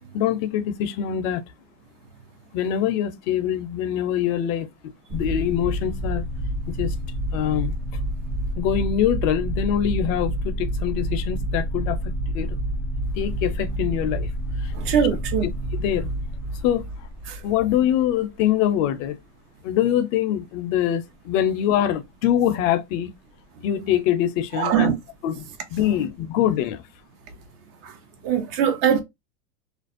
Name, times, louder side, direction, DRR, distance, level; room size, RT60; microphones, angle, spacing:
voice 1, 0.1-1.4 2.5-6.2 6.8-6.9 7.3-7.7 8.6-12.6 13.2-14.3 14.6-14.7 15.4-16.1 16.6-17.1 17.4-19.2 19.6-23.1 23.6-24.9 25.2-26.8, left 10 dB, 55° left, 0.5 m, -24 dB
sound 1, 5.1-18.1, equal, 35° right, 0.9 m, -28 dB
voice 2, 14.7-15.5 17.3-17.4 24.6-24.9 27.8-27.9 28.2-29.0, right 8 dB, 65° right, 0.8 m, -21 dB
2.5 x 2.0 x 2.4 m
supercardioid pair, 120°, 50 cm